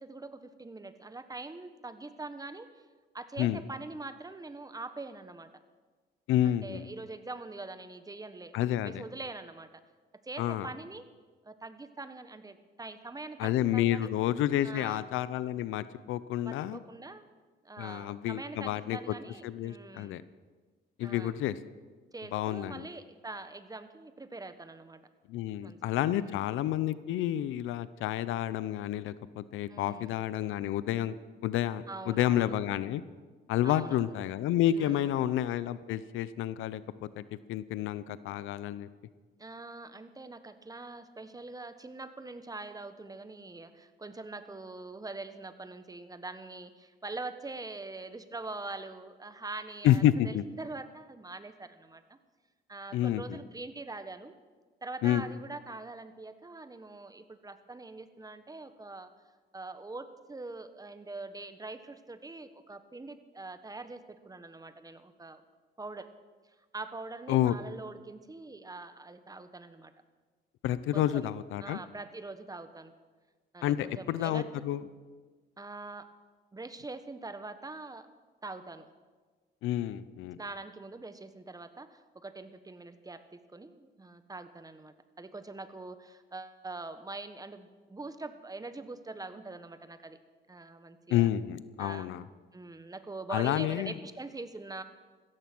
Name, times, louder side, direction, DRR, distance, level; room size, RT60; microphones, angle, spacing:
voice 1, 0.0-2.8 3.1-5.5 6.4-9.8 10.2-11.1 11.4-14.1 14.6-15.1 16.4-17.3 17.6-20.3 21.0-21.4 22.1-25.0 25.6-26.4 29.7-30.2 31.9-32.5 33.6-34.1 34.7-35.3 39.4-52.2 52.7-54.3 54.8-59.1 59.5-65.4 65.8-66.1 66.7-69.9 70.9-71.3 71.6-72.9 73.5-74.5 75.6-76.1 76.5-78.1 78.4-78.9 80.4-83.2 83.5-90.2 90.5-91.3 91.8-92.1 92.5-94.8, right 3 dB, 20° right, 11 dB, 1.2 m, -43 dB
voice 2, 6.3-6.9 8.5-9.0 10.4-10.7 13.4-16.8 17.8-19.1 19.4-20.2 21.0-21.6 22.3-22.9 25.3-31.1 31.4-33.0 33.5-36.8 37.2-37.3 37.5-38.9 49.8-50.4 52.9-53.4 55.0-55.2 67.3-67.6 70.6-71.8 73.6-74.8 79.6-80.4 91.1-92.2 93.3-94.0, left 12 dB, 90° left, 16 dB, 0.7 m, -29 dB
15.5 x 14.0 x 6.1 m, 1.4 s
cardioid pair, 90°, 20 cm